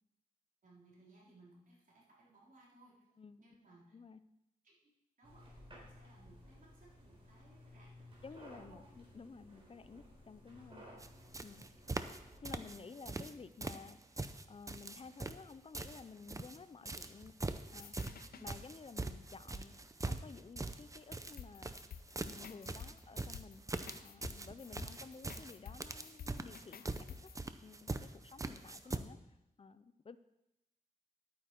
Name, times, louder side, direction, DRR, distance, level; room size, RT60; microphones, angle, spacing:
voice 1, 0.6-3.0 3.4-4.0 4.6-4.9 5.2-8.1 8.4-8.8 12.6-12.8 18.3-18.5 22.7-23.0 28.8-29.2, right 2 dB, 60° right, -4 dB, 3.8 m, -64 dB
voice 2, 3.2-3.6 3.9-4.2 8.2-11.0 11.4-11.7 12.4-14.0 14.5-17.4 17.7-23.6 24.0-27.3 27.6-29.2 29.6-30.2, left 5 dB, 35° left, 13 dB, 0.6 m, -53 dB
sound 1, 5.2-12.7, equal, 35° right, 3.8 m, -57 dB
sound 2, 11.0-11.1 11.3-12.2 12.4-13.3 13.6-16.6 16.9-29.0, right 2 dB, 20° right, 0.6 m, -42 dB
sound 3, 17.8-18.5 21.4-27.4, left 7 dB, 75° left, 0.7 m, -52 dB
11.0 x 9.1 x 4.5 m, 0.89 s
wide cardioid pair, 100°, 15 cm